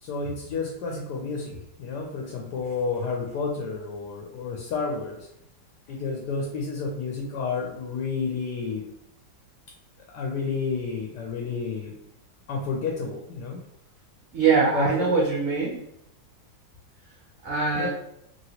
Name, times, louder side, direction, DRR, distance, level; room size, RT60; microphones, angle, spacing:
voice 1, 0.0-5.3 5.9-8.8 10.1-11.9 12.5-13.6 14.7-15.1 17.7-17.9, left 4 dB, 70° left, 0 dB, 1.1 m, -30 dB
voice 2, 14.3-15.8 17.4-17.9, right 4 dB, 70° right, -4 dB, 0.8 m, -22 dB
2.9 x 2.8 x 2.8 m, 0.77 s
omnidirectional pair, 2.0 m